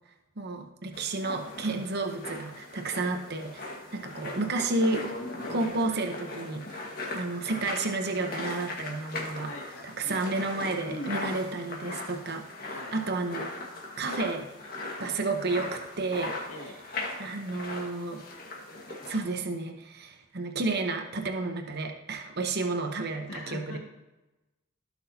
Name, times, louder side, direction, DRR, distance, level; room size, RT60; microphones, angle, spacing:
voice 1, 0.4-5.1 5.5-6.8 7.1-9.5 10.0-13.5 14.0-14.5 15.0-16.4 17.2-18.2 18.9-23.8, right 3 dB, 50° right, 4 dB, 0.9 m, -31 dB
sound 1, 0.9-19.2, left 2 dB, 45° left, 1.6 m, -39 dB
voice 2, 9.4-10.5 10.9-11.6 12.7-13.0 15.0-15.2 16.5-16.8 23.3-23.8, left 1 dB, 75° left, 1 dB, 2.0 m, -42 dB
15.5 x 6.2 x 2.8 m, 1.1 s
head